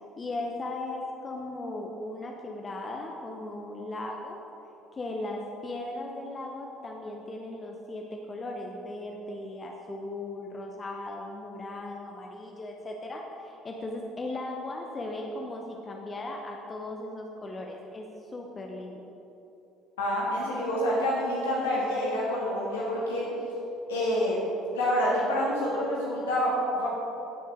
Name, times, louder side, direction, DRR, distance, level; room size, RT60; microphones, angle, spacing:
voice 1, 0.2-4.4 4.9-19.1, left 2 dB, 25° left, 1 dB, 1.0 m, -37 dB
voice 2, 20.0-23.2 23.9-24.4 24.7-26.9, equal, 70° left, -6 dB, 2.6 m, -27 dB
16.0 x 6.7 x 3.9 m, 3.0 s
figure-of-eight pair, 55°, 0 cm